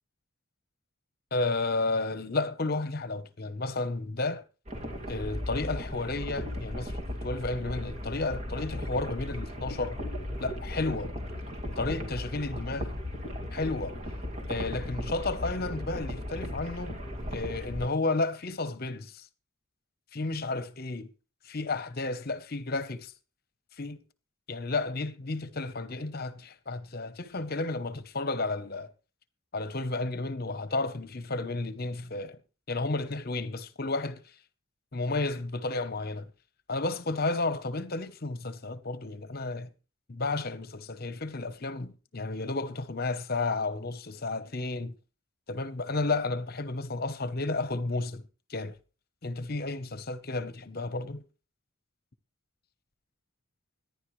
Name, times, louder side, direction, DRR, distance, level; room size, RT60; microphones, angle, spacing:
voice 1, 1.3-4.4 5.1-7.0 7.2-10.0 10.4-11.1 11.8-12.9 13.5-14.0 14.5-17.0 17.3-19.3 20.1-21.1 21.4-23.1 23.8-24.0 24.5-28.9 29.5-32.4 32.7-34.2 34.9-36.3 36.7-39.7 40.1-45.0 45.5-48.2 48.5-48.8 49.2-51.2, left 3 dB, 50° left, 1.0 m, -32 dB
sound 1, 4.7-17.9, left 1 dB, 35° right, 2.5 m, -36 dB
25.0 x 10.5 x 3.2 m
head